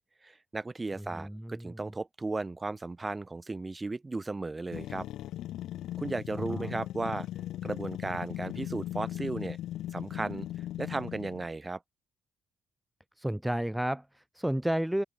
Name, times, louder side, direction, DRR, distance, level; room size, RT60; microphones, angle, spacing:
voice 1, 0.0-5.1 6.0-7.3 7.6-9.6 9.9-10.5 10.8-11.8, right 3 dB, 20° right, 4.1 m, -35 dB
voice 2, 1.0-1.8 6.5-6.8 13.2-15.0, right 1 dB, 5° right, 0.9 m, -32 dB
sound 1, 4.7-11.5, left 13 dB, 80° left, 5.8 m, -38 dB
open air
cardioid pair, 90°, 0 cm